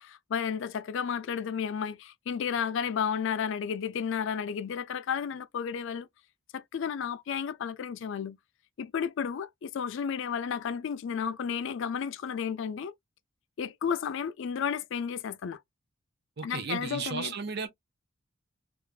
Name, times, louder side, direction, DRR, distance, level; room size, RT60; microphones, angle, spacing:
voice 1, 0.0-6.1 6.5-8.4 8.8-12.9 13.6-15.6 16.4-17.3, left 7 dB, 65° left, 0.4 m, -32 dB
voice 2, 16.4-17.7, right 5 dB, 55° right, 0.7 m, -34 dB
3.1 x 2.3 x 2.3 m
head